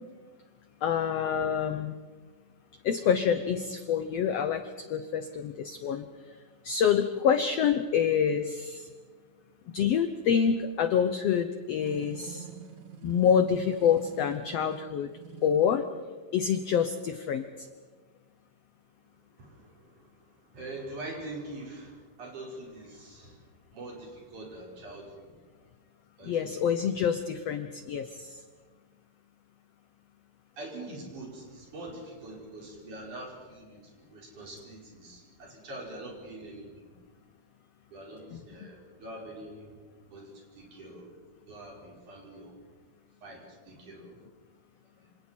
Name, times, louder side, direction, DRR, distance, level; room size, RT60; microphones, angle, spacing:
voice 1, 0.8-2.0 2.8-6.0 6.6-8.9 9.7-12.5 13.0-15.1 15.4-15.9 16.3-17.7 26.2-28.4, left 7 dB, 80° left, 9 dB, 1.4 m, -27 dB
sound 1, 11.8-15.8, right 7 dB, 85° right, 3.0 m, -46 dB
voice 2, 19.1-25.4 26.2-26.9 30.6-37.0 37.9-39.7 40.1-41.1 41.5-42.6 43.2-44.2 44.9-45.1, right 2 dB, 60° right, -2 dB, 6.4 m, -44 dB
27.0 x 27.0 x 4.5 m, 1.5 s
omnidirectional pair, 4.0 m